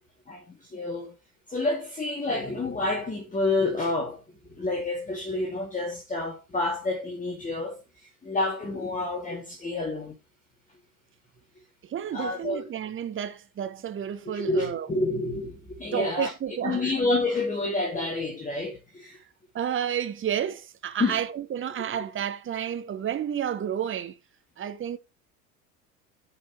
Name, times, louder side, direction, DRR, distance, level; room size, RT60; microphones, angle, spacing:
voice 1, 0.3-1.1 1.5-4.2 4.6-7.8 8.2-10.1 12.1-12.6 14.3-16.3 16.6-19.2 21.0-21.2, left 2 dB, 15° left, 2.4 m, -29 dB
voice 2, 11.9-14.9 15.9-16.9 19.5-24.2 24.6-25.0, right 9 dB, 25° right, 1.3 m, -31 dB
15.0 x 5.6 x 3.0 m
figure-of-eight pair, 80°, 49 cm